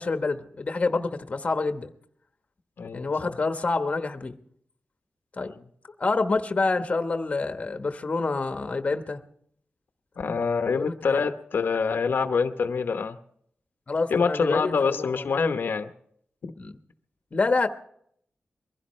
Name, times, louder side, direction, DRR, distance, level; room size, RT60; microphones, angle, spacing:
voice 1, 0.0-1.9 2.9-4.4 5.4-5.5 6.0-9.2 10.7-11.2 13.9-14.8 15.1-15.2 16.6-16.7 17.3-17.7, left 3 dB, 35° left, 1.2 m, -27 dB
voice 2, 2.8-3.3 5.4-5.6 10.2-13.2 14.1-15.9 16.4-16.5, left 5 dB, 70° left, 0.9 m, -26 dB
23.0 x 16.0 x 3.2 m
wide cardioid pair, 145°, 4 cm